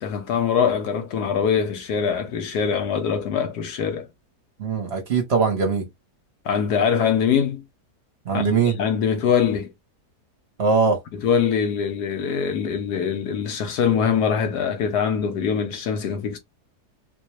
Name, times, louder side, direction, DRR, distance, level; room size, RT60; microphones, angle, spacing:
voice 1, 0.0-4.1 6.4-7.6 8.3-9.7 11.1-16.4, left 7 dB, 80° left, 1.4 m, -23 dB
voice 2, 4.6-5.9 8.3-8.8 10.6-11.0, right 5 dB, 45° right, 1.0 m, -21 dB
4.1 x 2.2 x 3.0 m
omnidirectional pair, 1.7 m